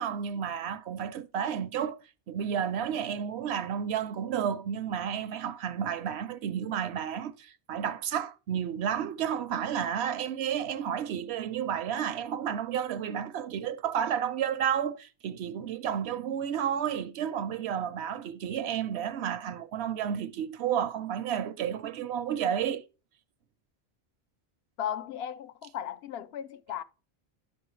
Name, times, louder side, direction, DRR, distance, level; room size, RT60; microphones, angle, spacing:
voice 1, 0.0-2.0 2.3-22.8, right 8 dB, 80° right, 0.8 m, -31 dB
voice 2, 24.8-26.8, left 10 dB, 70° left, 0.8 m, -36 dB
11.0 x 6.1 x 3.1 m
omnidirectional pair, 1.1 m